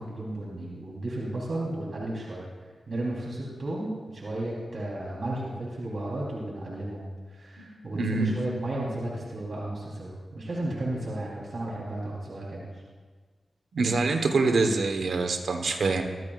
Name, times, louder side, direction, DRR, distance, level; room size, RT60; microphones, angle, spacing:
voice 1, 0.0-2.4 2.9-12.8, right 1 dB, 60° right, -5 dB, 3.9 m, -34 dB
voice 2, 7.9-8.4 13.7-16.0, right 3 dB, 85° right, 5 dB, 1.3 m, -25 dB
23.5 x 14.0 x 2.5 m, 1.5 s
cardioid pair, 65°, 0 cm